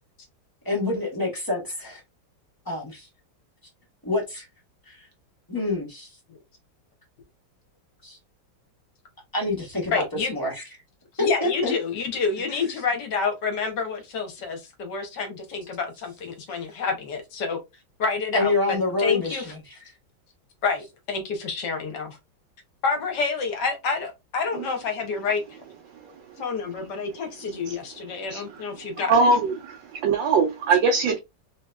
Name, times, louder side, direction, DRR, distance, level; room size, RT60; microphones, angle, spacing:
voice 1, 0.6-2.0 2.6-3.1 4.0-4.4 4.9-5.1 5.5-6.1 8.0-8.2 9.3-10.0 10.3-10.6 11.2-11.7 18.3-19.8, left 2 dB, 15° left, 1.0 m, -27 dB
voice 2, 9.9-10.3 11.2-17.6 18.0-19.4 20.6-22.2 22.8-25.4 26.4-29.3 31.1-31.2, left 4 dB, 65° left, 1.4 m, -28 dB
voice 3, 29.1-29.8 30.0-31.2, right 4 dB, 75° right, 1.3 m, -20 dB
3.5 x 2.8 x 2.2 m
omnidirectional pair, 2.1 m